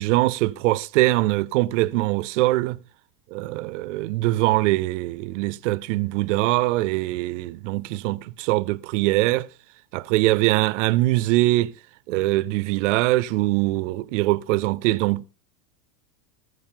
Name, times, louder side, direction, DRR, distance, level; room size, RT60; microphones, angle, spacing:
voice 1, 0.0-2.8 3.3-9.5 9.9-11.7 12.1-15.3, right 18 dB, 50° right, 0.5 m, -22 dB
14.5 x 8.9 x 3.8 m
supercardioid pair, 180°, 47 cm